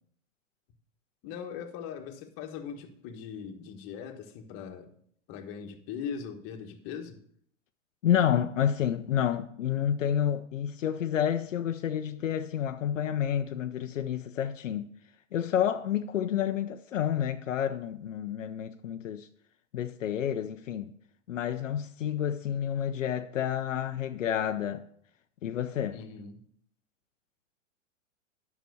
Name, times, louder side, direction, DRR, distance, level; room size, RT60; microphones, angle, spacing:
voice 1, 1.2-5.0 5.3-7.2 25.9-26.4, left 7 dB, 35° left, 1.4 m, -40 dB
voice 2, 8.0-14.9 15.3-19.3 19.7-20.9 21.3-24.8 25.4-26.0, left 9 dB, 80° left, 0.7 m, -29 dB
9.2 x 6.1 x 6.4 m
hypercardioid pair, 115°, 38 cm